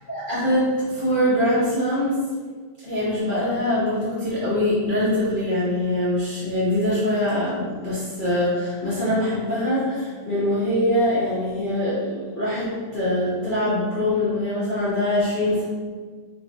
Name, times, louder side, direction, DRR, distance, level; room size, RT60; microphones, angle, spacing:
voice 1, 0.1-2.1 2.8-15.6, left 1 dB, 35° left, -12 dB, 0.8 m, -23 dB
3.7 x 3.2 x 2.8 m, 1.5 s
omnidirectional pair, 2.4 m